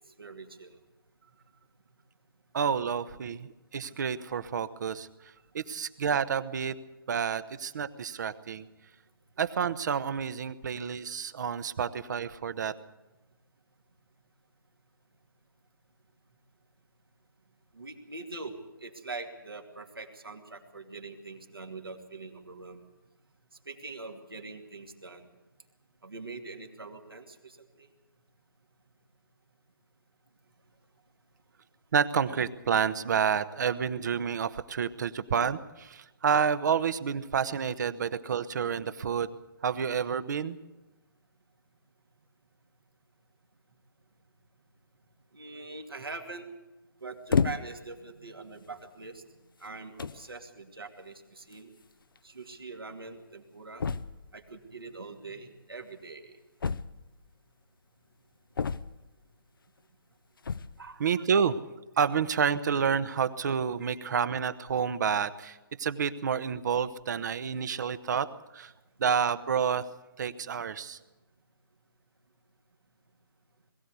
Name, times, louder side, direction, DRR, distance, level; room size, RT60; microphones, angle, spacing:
voice 1, 0.2-0.8 17.7-22.8 23.6-25.3 26.0-27.9 45.3-46.5 47.0-49.2 49.6-51.7 52.2-53.8 54.3-56.4 60.8-61.0, right 3 dB, 80° right, 3 dB, 2.6 m, -43 dB
voice 2, 2.5-5.1 5.5-6.7 7.1-8.7 9.4-12.7 31.9-39.4 39.6-40.6 61.0-61.6 62.0-68.7 69.0-69.9 70.2-71.0, right 7 dB, 55° right, 13 dB, 1.0 m, -29 dB
sound 1, 47.3-47.9 48.7-48.8 49.6-49.7 50.0-50.3 51.5-51.6 51.8-51.9 52.2-52.3 53.8-54.3 56.6-57.3 58.6-59.2 60.4-60.9, left 5 dB, 70° left, 0.7 m, -30 dB
21.0 x 15.5 x 8.3 m, 1.0 s
figure-of-eight pair, 135°, 12 cm